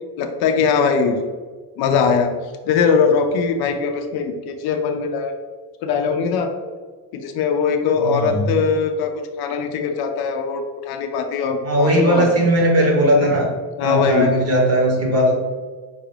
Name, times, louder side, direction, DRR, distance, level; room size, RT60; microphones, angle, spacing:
voice 1, 0.2-1.2 1.8-2.3 2.6-5.4 5.8-6.5 7.1-9.1 9.4-12.3 13.2-13.4 13.8-14.3, left 5 dB, 60° left, 5 dB, 0.5 m, -20 dB
voice 2, 8.0-8.4 11.6-13.5 13.8-15.3, equal, 35° right, -1 dB, 1.0 m, -18 dB
5.3 x 2.4 x 3.2 m, 1.4 s
cardioid pair, 180°, 42 cm